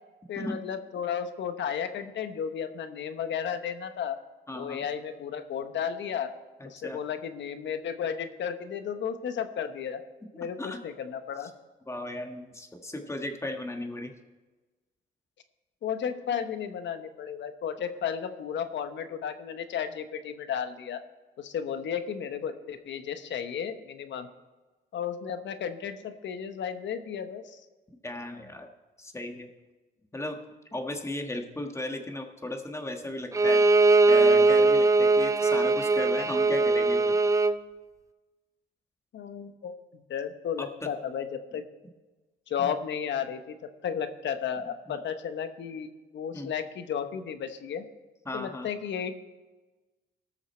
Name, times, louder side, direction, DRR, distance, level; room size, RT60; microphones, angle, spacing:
voice 1, 0.3-4.2 4.5-6.3 6.6-10.0 10.4-11.5 15.8-21.0 21.4-24.3 24.9-27.6 39.1-41.6 42.5-43.6 43.8-47.8 48.3-49.1, left 8 dB, 65° left, 9 dB, 1.0 m, -33 dB
voice 2, 4.5-4.8 6.6-7.0 10.6-10.8 11.4-11.5 11.9-14.1 28.0-28.7 29.0-29.5 30.1-30.4 30.7-33.6 34.1-37.1 40.6-40.7 42.6-42.7 44.9-45.0 46.3-46.5 48.2-48.7, left 1 dB, 15° left, 4 dB, 1.4 m, -36 dB
Bowed string instrument, 33.3-37.6, right 3 dB, 15° right, 0.4 m, -21 dB
18.5 x 6.5 x 4.4 m, 1.2 s
cardioid pair, 90°, 20 cm